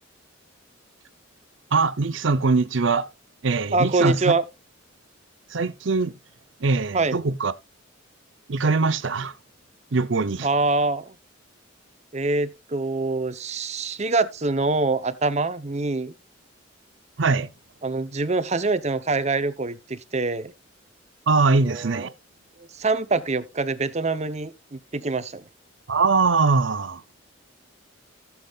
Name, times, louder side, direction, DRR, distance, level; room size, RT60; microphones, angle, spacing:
voice 1, 1.7-3.1 3.4-4.2 5.5-6.1 6.6-7.5 8.5-9.3 9.9-10.5 17.2-17.5 21.3-22.1 25.9-27.0, right 4 dB, 65° right, 0.7 m, -22 dB
voice 2, 3.7-4.4 6.9-7.2 10.4-11.1 12.1-16.1 17.8-20.5 21.5-22.1 22.8-25.4, right 3 dB, 35° right, 0.8 m, -25 dB
15.5 x 7.2 x 2.4 m
head